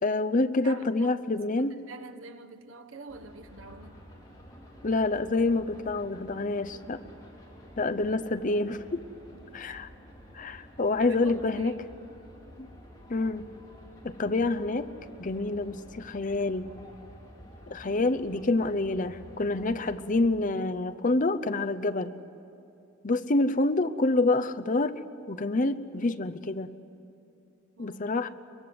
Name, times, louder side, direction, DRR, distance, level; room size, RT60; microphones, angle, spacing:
voice 1, 0.0-1.8 4.8-7.0 7.8-9.0 9.5-9.9 10.3-11.7 12.6-12.7 13.1-13.5 14.0-14.9 15.2-16.7 17.7-22.1 23.0-25.0 25.3-26.7 27.8-28.3, left 2 dB, 40° left, 10 dB, 0.7 m, -27 dB
voice 2, 0.6-1.2 1.6-4.0 9.3-9.7 11.0-11.8 27.8-28.0, right 3 dB, 85° right, 9 dB, 1.2 m, -47 dB
sound 1, 3.1-20.1, equal, 20° left, 4.1 m, -50 dB
23.5 x 22.0 x 8.0 m, 2.7 s
head